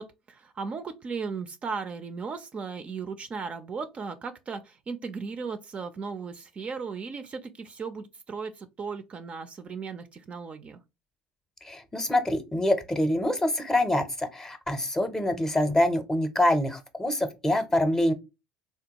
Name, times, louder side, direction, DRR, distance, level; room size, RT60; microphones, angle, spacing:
voice 1, 0.0-10.8, right 5 dB, 35° right, 0.4 m, -36 dB
voice 2, 11.6-18.1, left 1 dB, 15° left, 0.6 m, -25 dB
3.4 x 2.3 x 2.8 m
hypercardioid pair, 70°, 4 cm